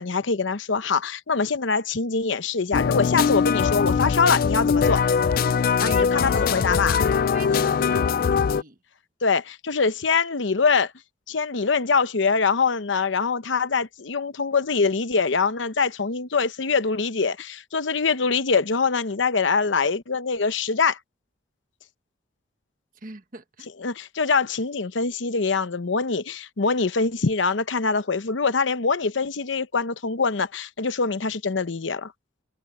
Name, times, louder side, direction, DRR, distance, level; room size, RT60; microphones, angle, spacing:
voice 1, 0.0-5.0 5.8-7.0 9.2-10.9 11.3-21.0 23.8-32.1, left 4 dB, 75° left, 0.9 m, -24 dB
sound 1, 2.7-8.6, left 6 dB, 50° left, 0.3 m, -21 dB
voice 2, 5.9-6.7 7.3-8.8 23.0-23.7, right 3 dB, 45° right, 1.4 m, -41 dB
head